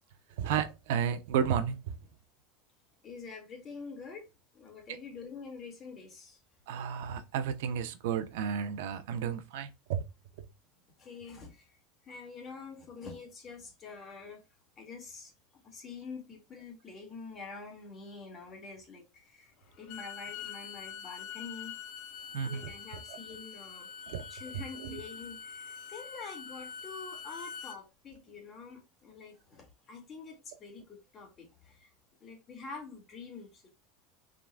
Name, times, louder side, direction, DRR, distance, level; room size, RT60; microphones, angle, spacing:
voice 1, 0.4-1.8 6.7-10.0 22.3-22.7 23.1-23.2 24.1-24.3 24.5-25.0, right 8 dB, 75° right, 0.7 m, -32 dB
voice 2, 3.0-4.3 4.5-6.4 11.0-11.7 12.0-14.4 14.8-15.3 15.6-21.7 22.3-31.9 32.2-33.7, left 4 dB, 30° left, 2.0 m, -46 dB
Bowed string instrument, 19.7-27.8, left 7 dB, 60° left, 0.8 m, -44 dB
5.8 x 3.8 x 2.2 m
supercardioid pair, 140°, 0 cm